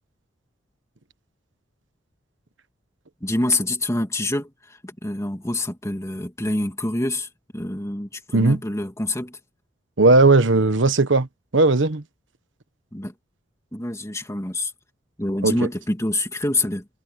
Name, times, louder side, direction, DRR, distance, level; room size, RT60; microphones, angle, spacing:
voice 1, 3.2-9.4 12.9-13.1 13.7-14.7 15.2-16.9, left 1 dB, 15° left, 2.6 m, -26 dB
voice 2, 10.0-11.3 11.5-12.0 15.4-15.6, right 3 dB, 75° right, 1.2 m, -16 dB
head